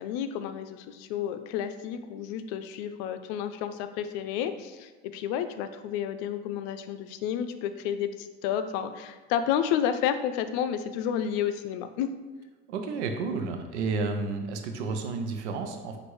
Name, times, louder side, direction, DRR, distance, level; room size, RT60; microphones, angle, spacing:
voice 1, 0.0-12.1, left 9 dB, 70° left, 10 dB, 0.5 m, -31 dB
voice 2, 12.7-16.0, right 4 dB, 85° right, 5 dB, 0.7 m, -31 dB
6.1 x 2.6 x 3.1 m, 1.3 s
hypercardioid pair, 80°, 33 cm